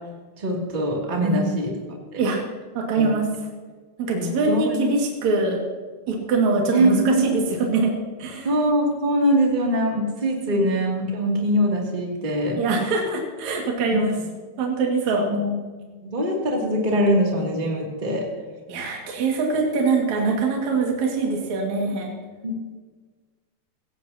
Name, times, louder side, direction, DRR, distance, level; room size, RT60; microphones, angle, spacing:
voice 1, 0.4-1.7 2.1-2.2 3.0-3.1 4.1-4.9 5.4-5.5 6.7-7.3 8.4-12.6 13.9-14.1 15.3-15.5 15.8-18.3 22.4-22.7, equal, 15° right, -2 dB, 1.9 m, -23 dB
voice 2, 1.2-1.6 2.2-2.4 2.7-3.3 4.0-5.6 6.1-7.9 8.2-8.5 10.5-10.7 12.6-14.1 14.6-15.3 18.7-22.1, right 3 dB, 50° right, -1 dB, 3.1 m, -23 dB
17.5 x 16.5 x 2.9 m, 1.4 s
omnidirectional pair, 4.5 m